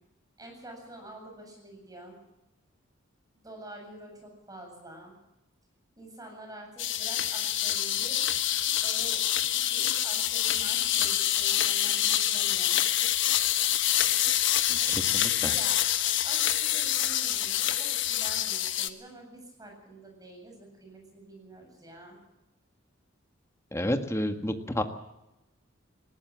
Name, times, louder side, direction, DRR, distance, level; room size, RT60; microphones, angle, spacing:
voice 1, 0.4-2.2 3.3-5.1 5.9-8.2 8.8-9.2 9.5-12.8 15.5-15.8 16.2-22.2, right 1 dB, 20° right, 2 dB, 7.8 m, -47 dB
sound 1, 6.8-18.9, left 12 dB, 65° left, 1.2 m, -26 dB
voice 2, 14.7-15.5 23.7-24.8, left 1 dB, 15° left, 7 dB, 1.7 m, -30 dB
19.5 x 18.0 x 7.5 m, 0.92 s
head